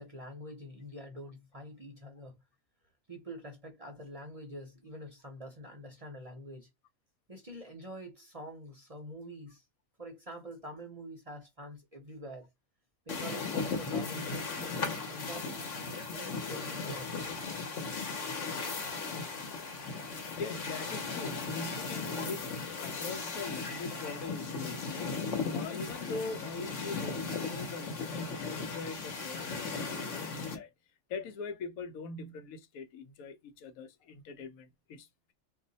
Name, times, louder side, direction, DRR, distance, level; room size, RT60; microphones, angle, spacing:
voice 1, 0.0-2.4 3.1-6.7 7.3-9.6 10.0-12.5 13.1-17.1, equal, 35° right, 0.6 m, -46 dB
sound 1, 13.1-30.6, left 4 dB, 65° left, 1.2 m, -37 dB
voice 2, 20.4-30.7 31.1-35.3, left 4 dB, 90° left, 1.1 m, -42 dB
2.7 x 2.1 x 3.9 m
omnidirectional pair, 1.4 m